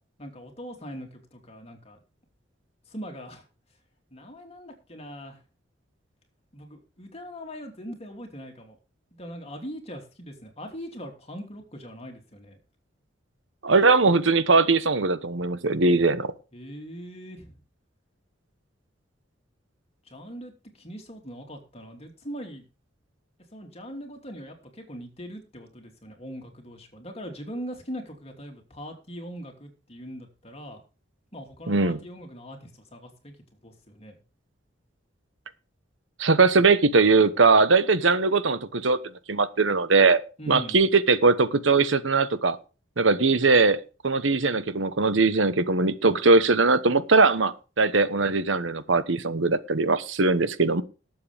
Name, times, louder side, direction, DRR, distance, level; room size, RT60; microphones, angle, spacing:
voice 1, 0.2-2.0 2.9-3.4 4.1-5.4 6.5-8.8 9.1-12.6 16.5-17.6 20.0-22.6 23.5-30.8 31.3-33.4 33.6-34.1 40.4-40.8, equal, 35° left, 2.9 m, -41 dB
voice 2, 13.6-16.3 31.7-32.0 36.2-39.0 39.3-40.2 40.5-42.6 43.0-50.8, right 3 dB, 80° right, 1.1 m, -20 dB
19.0 x 7.7 x 3.5 m
head